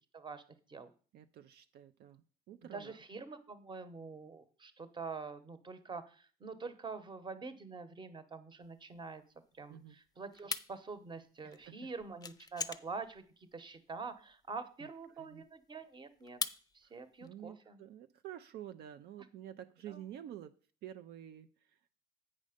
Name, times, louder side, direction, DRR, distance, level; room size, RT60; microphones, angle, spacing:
voice 1, 1.1-3.0 9.7-10.0 11.4-11.8 14.8-14.9 15.2-15.4 17.2-20.5 20.8-22.0, right 11 dB, 75° right, 9 dB, 0.5 m, -50 dB
voice 2, 2.7-9.2 9.5-16.4 16.7-17.8 19.9-20.0, right 4 dB, 25° right, 11 dB, 1.0 m, -46 dB
sound 1, 8.6-17.3, left 5 dB, 20° left, 0.5 m, -44 dB
8.6 x 5.3 x 5.0 m, 0.40 s
cardioid pair, 110°, 17 cm